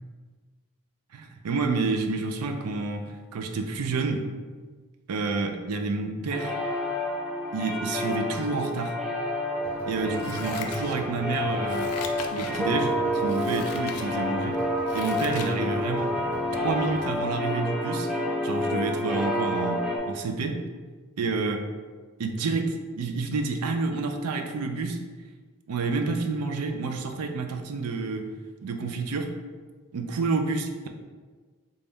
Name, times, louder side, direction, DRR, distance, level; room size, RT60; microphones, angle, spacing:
voice 1, 1.1-4.3 5.1-6.6 7.5-9.0 9.8-11.9 12.3-14.6 14.9-16.1 16.6-18.1 18.4-20.6 21.2-21.6 22.2-25.0 25.7-28.3 28.6-29.4 29.9-30.9, right 3 dB, 90° right, 5 dB, 0.4 m, -29 dB
sound 1, 6.3-20.0, left 1 dB, ahead, 0.4 m, -29 dB
sound 2, 9.6-17.2, equal, 25° right, 1.1 m, -43 dB
Scissors, 10.2-11.3 11.6-12.7 13.2-14.1 14.5-15.6 15.9-16.0, left 6 dB, 85° left, 0.4 m, -40 dB
4.0 x 2.3 x 3.4 m, 1.4 s
head